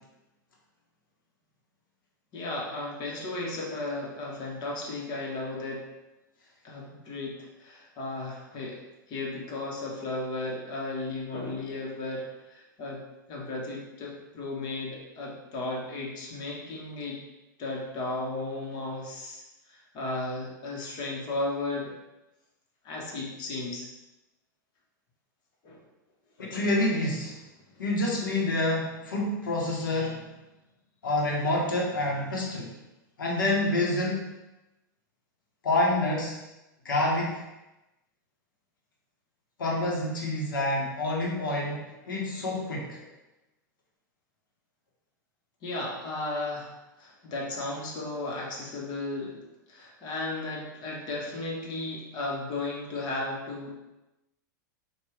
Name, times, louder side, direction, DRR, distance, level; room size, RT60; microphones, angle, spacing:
voice 1, 2.3-5.9 6.6-8.8 9.1-13.0 13.3-17.2 17.6-21.9 22.8-23.9 25.6-25.8 45.6-46.7 47.0-49.4 49.7-53.7, left 2 dB, 45° left, -2 dB, 1.3 m, -35 dB
voice 2, 26.4-27.4 27.8-30.3 31.0-32.7 33.2-34.3 35.6-36.4 36.8-37.4 39.6-43.0, left 1 dB, 85° left, -2 dB, 1.1 m, -27 dB
4.8 x 2.5 x 3.2 m, 0.99 s
hypercardioid pair, 110°, 11 cm